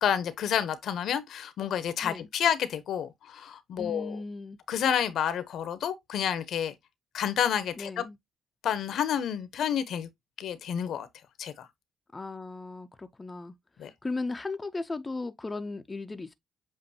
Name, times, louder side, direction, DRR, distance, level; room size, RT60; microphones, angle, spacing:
voice 1, 0.0-4.2 4.7-6.7 7.1-8.0 8.6-10.1 10.4-11.1 11.4-11.7 13.8-13.9, left 9 dB, 70° left, 0.8 m, -29 dB
voice 2, 3.8-4.6 7.8-8.2 12.1-16.3, left 3 dB, 20° left, 0.5 m, -36 dB
7.5 x 2.5 x 2.7 m
cardioid pair, 90°, 0 cm